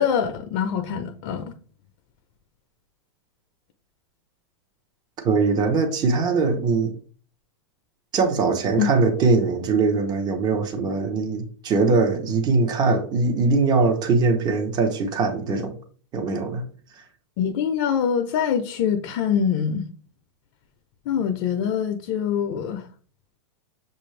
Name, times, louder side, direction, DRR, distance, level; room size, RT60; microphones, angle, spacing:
voice 1, 0.0-1.5 8.8-8.9 17.4-19.9 21.1-22.9, left 8 dB, 50° left, 0.5 m, -24 dB
voice 2, 5.2-7.0 8.1-15.7 16.1-16.6, right 4 dB, 25° right, 0.8 m, -21 dB
6.4 x 2.5 x 3.2 m
hypercardioid pair, 140°, 16 cm